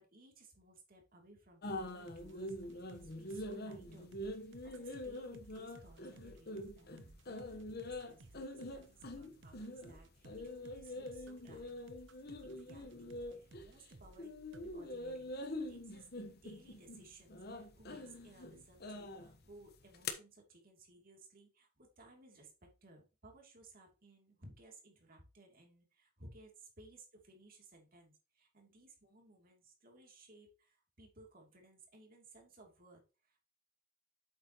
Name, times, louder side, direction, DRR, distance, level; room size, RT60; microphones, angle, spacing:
voice 1, 0.0-11.9 12.4-15.3 15.7-33.4, right 2 dB, 45° right, 1 dB, 3.0 m, -60 dB
sound 1, 1.6-13.9 14.2-20.1, left 1 dB, 50° left, 1.2 m, -45 dB
sound 2, 1.7-14.3 14.5-14.7, right 2 dB, 65° right, 0.8 m, -58 dB
8.4 x 7.7 x 3.0 m, 0.31 s
head